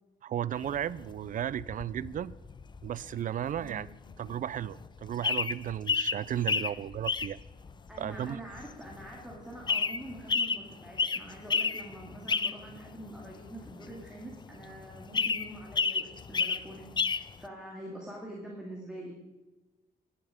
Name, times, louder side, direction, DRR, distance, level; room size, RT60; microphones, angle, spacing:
voice 1, 0.2-2.3 2.8-3.9 4.2-7.4 8.0-8.4, right 10 dB, 55° right, 0.4 m, -34 dB
sound 1, 0.6-3.2 3.5-17.3, left 5 dB, 30° left, 0.5 m, -32 dB
voice 2, 7.9-19.1, right 1 dB, 5° right, 2.4 m, -45 dB
11.0 x 11.0 x 5.1 m
cardioid pair, 125°, 16 cm